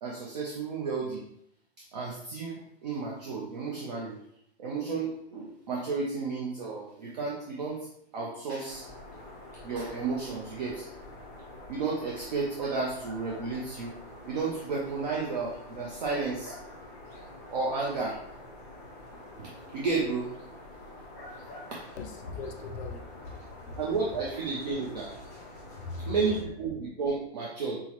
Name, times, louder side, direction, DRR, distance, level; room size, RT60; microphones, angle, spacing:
voice 1, 0.0-1.2 1.8-4.2 4.6-7.9 8.1-8.9 9.6-10.9 11.7-14.0 14.3-16.5 17.5-18.2 19.4-20.3 21.7-21.9 23.8-25.1 26.1-27.8, right 4 dB, 40° right, -4 dB, 0.6 m, -32 dB
sound 1, 8.7-26.4, left 1 dB, 15° left, 0.4 m, -47 dB
voice 2, 22.0-23.8 25.5-26.1, left 3 dB, 80° left, 6 dB, 0.6 m, -40 dB
5.4 x 2.0 x 3.0 m, 0.72 s
hypercardioid pair, 175°, 33 cm